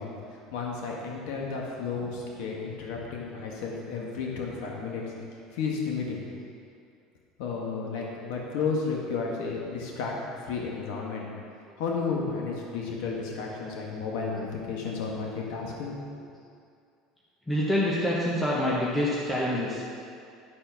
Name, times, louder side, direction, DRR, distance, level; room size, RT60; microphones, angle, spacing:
voice 1, 0.0-5.1 5.5-6.2 7.4-10.1 10.4-11.3 11.8-16.2, left 4 dB, 75° left, -2 dB, 1.5 m, -32 dB
voice 2, 11.7-12.4 14.3-14.6 17.5-19.8, left 1 dB, 10° left, -6 dB, 0.9 m, -28 dB
11.5 x 4.4 x 5.8 m, 2.4 s
cardioid pair, 160°, 0 cm